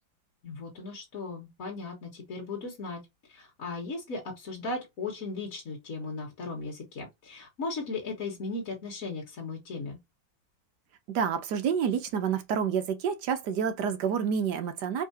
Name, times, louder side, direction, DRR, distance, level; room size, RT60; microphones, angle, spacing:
voice 1, 0.4-3.0 3.3-10.0, left 3 dB, 50° left, 1.8 m, -37 dB
voice 2, 11.1-15.1, right 7 dB, 70° right, 1.3 m, -28 dB
4.7 x 3.7 x 2.7 m
omnidirectional pair, 2.0 m